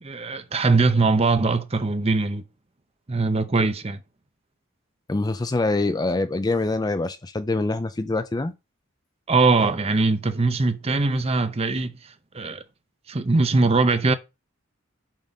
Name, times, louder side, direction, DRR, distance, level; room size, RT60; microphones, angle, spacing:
voice 1, 0.0-2.4 3.1-4.0 9.3-12.6 13.1-14.1, right 3 dB, 30° right, 0.6 m, -21 dB
voice 2, 5.1-8.5, left 2 dB, 20° left, 0.4 m, -25 dB
7.3 x 4.1 x 5.2 m
head